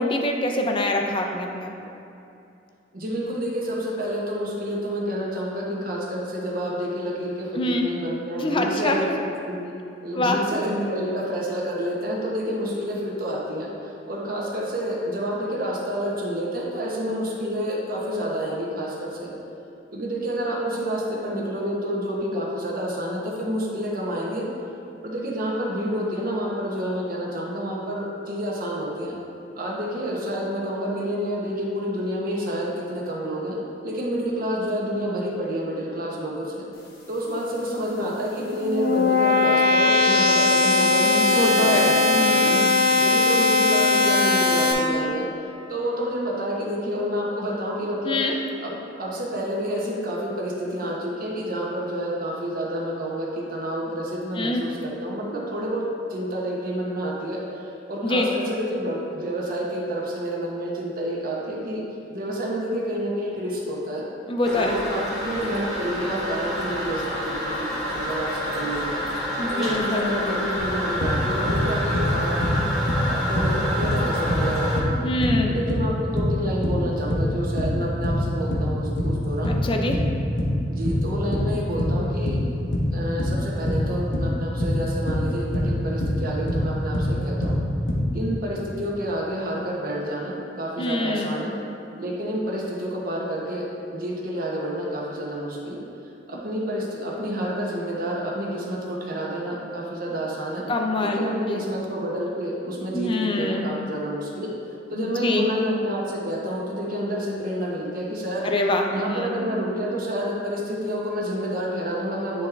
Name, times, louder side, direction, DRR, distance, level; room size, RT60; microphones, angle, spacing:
voice 1, 0.0-1.7 7.6-7.9 8.4-9.1 10.1-10.4 41.0-42.7 48.0-48.4 54.4-54.6 58.0-58.3 64.3-64.7 69.4-70.1 75.0-75.5 79.5-80.0 90.8-91.4 100.7-101.6 102.9-103.7 104.9-105.5 108.4-109.4, left 2 dB, 30° left, 2 dB, 0.5 m, -25 dB
voice 2, 2.9-9.7 10.0-19.3 19.9-24.5 25.0-29.2 29.6-33.6 33.8-36.6 37.1-42.6 43.0-45.3 45.7-61.8 62.1-64.1 64.5-69.0 69.5-72.6 73.0-75.0 75.5-79.6 80.7-82.4 82.9-87.6 88.1-91.5 92.0-95.8 96.3-100.7 101.0-104.5 104.9-108.5 108.9-112.5, equal, 55° right, -3 dB, 1.1 m, -29 dB
sound 1, 38.2-44.7, left 3 dB, 55° left, 1.0 m, -19 dB
Toilet flush, 64.4-74.8, equal, ahead, 1.2 m, -28 dB
sound 2, 70.6-71.7 71.9-73.1 73.3-79.2 79.4-86.7 86.9-88.0, left 1 dB, 90° left, 1.0 m, -24 dB
9.8 x 3.5 x 3.4 m, 2.6 s
head